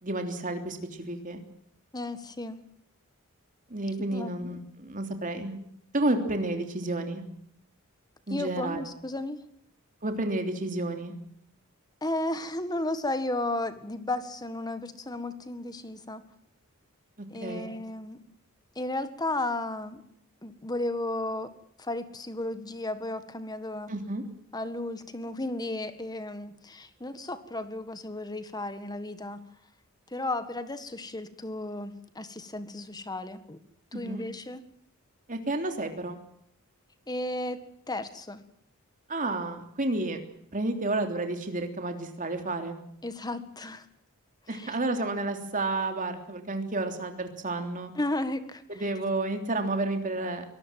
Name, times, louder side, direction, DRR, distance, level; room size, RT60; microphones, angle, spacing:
voice 1, 0.0-1.4 3.7-5.6 5.9-7.2 8.3-8.8 10.0-11.1 17.4-17.7 23.9-24.2 33.9-34.2 35.3-36.2 39.1-40.2 40.5-42.8 44.5-47.9 48.7-50.4, right 2 dB, 40° right, 5 dB, 3.3 m, -31 dB
voice 2, 1.9-2.6 4.1-4.3 8.3-9.4 12.0-16.2 17.3-18.2 18.7-20.0 20.4-21.5 21.8-23.9 24.5-29.4 30.1-33.6 33.9-34.6 37.1-37.6 37.9-38.4 43.0-43.8 44.5-44.8 47.9-48.6, left 2 dB, 20° left, 11 dB, 1.7 m, -34 dB
24.0 x 19.0 x 7.6 m, 0.68 s
head